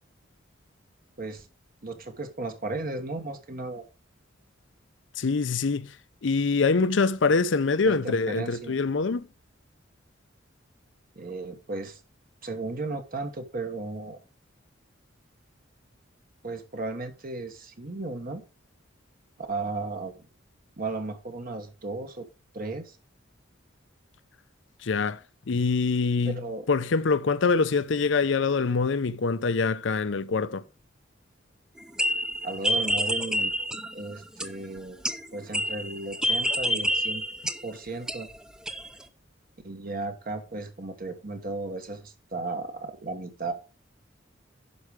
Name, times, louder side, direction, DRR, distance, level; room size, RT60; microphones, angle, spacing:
voice 1, 1.8-3.8 7.8-8.8 11.1-12.0 12.4-14.2 16.4-18.4 19.5-20.2 20.8-22.3 22.5-23.0 26.3-26.7 32.4-33.5 33.9-35.0 35.3-37.2 37.6-38.3 39.6-43.5, right 3 dB, 45° right, 1.2 m, -35 dB
voice 2, 5.2-5.9 6.2-9.3 24.8-25.2 25.5-26.4 26.7-30.6, left 4 dB, 70° left, 0.6 m, -24 dB
sound 1, 31.8-34.8 35.0-38.4 38.7-39.0, equal, 5° right, 0.5 m, -28 dB
11.0 x 4.9 x 4.8 m
head